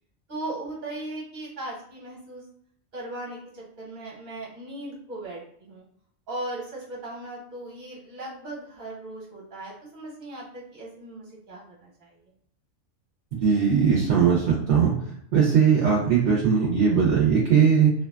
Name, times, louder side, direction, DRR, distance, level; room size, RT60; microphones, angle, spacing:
voice 1, 0.3-2.4 2.9-5.8 6.3-12.2, right 2 dB, 40° right, -4 dB, 1.0 m, -38 dB
voice 2, 13.3-14.9 15.3-17.9, right 6 dB, 65° right, -4 dB, 0.9 m, -20 dB
2.6 x 2.2 x 2.2 m, 0.65 s
omnidirectional pair, 1.4 m